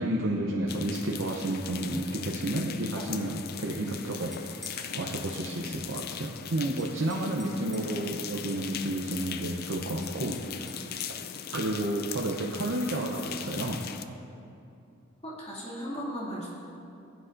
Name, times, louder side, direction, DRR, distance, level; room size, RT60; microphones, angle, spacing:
voice 1, 0.0-4.3 4.7-10.8 11.5-13.8, right 1 dB, 65° right, -1 dB, 0.7 m, -31 dB
sound 1, 0.7-14.0, left 8 dB, 50° left, 0.4 m, -40 dB
sound 2, 4.3-4.9 6.8-8.0 10.0-11.2, equal, ahead, 1.0 m, -50 dB
voice 2, 15.2-16.5, equal, 30° left, -6 dB, 2.3 m, -37 dB
16.0 x 9.0 x 2.6 m, 2.6 s
head